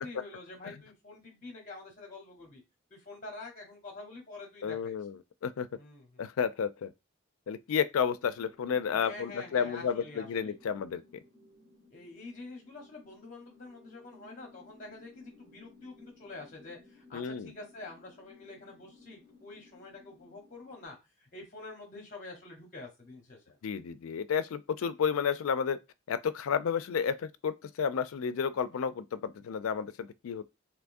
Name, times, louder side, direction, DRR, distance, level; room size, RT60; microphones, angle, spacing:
voice 1, 0.0-2.6 2.9-4.9 5.8-6.2 8.9-10.5 11.9-23.6, left 3 dB, 40° left, 0.8 m, -47 dB
voice 2, 4.6-5.7 6.2-6.9 7.5-11.0 17.1-17.5 23.6-25.8 26.1-30.4, left 7 dB, 90° left, 0.4 m, -31 dB
sound 1, 8.0-20.9, left 2 dB, 65° right, 1.8 m, -59 dB
3.5 x 2.9 x 2.5 m
head